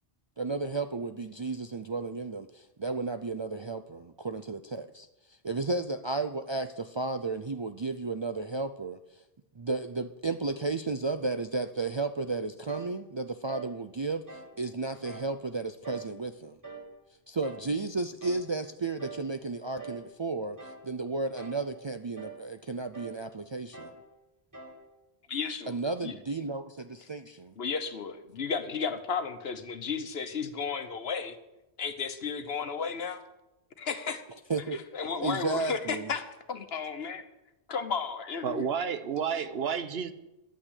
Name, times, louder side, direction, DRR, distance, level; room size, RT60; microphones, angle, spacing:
voice 1, 0.4-9.2 9.6-16.6 17.3-23.9 25.7-27.5 34.5-34.8 35.2-36.1, right 3 dB, 40° right, 8 dB, 0.4 m, -33 dB
sound 1, 12.7-13.0 13.5-13.8 14.3-14.6 15.0-15.3 15.8-16.2 16.6-16.9 17.4-17.7 18.2-18.5 19.0-19.3 19.8-20.1 20.6-20.9 21.4-21.7 22.2-22.4 22.9-23.2 23.7-24.0 24.5-24.8, right 5 dB, 20° right, 1.8 m, -44 dB
voice 2, 25.3-26.1 27.6-31.4 31.8-33.2 33.8-34.2 34.9-37.2 37.7-38.7, left 5 dB, 75° left, 9 dB, 1.3 m, -33 dB
voice 3, 38.4-40.1, right 7 dB, 75° right, 12 dB, 1.1 m, -31 dB
11.0 x 8.9 x 8.2 m, 0.95 s
omnidirectional pair, 1.0 m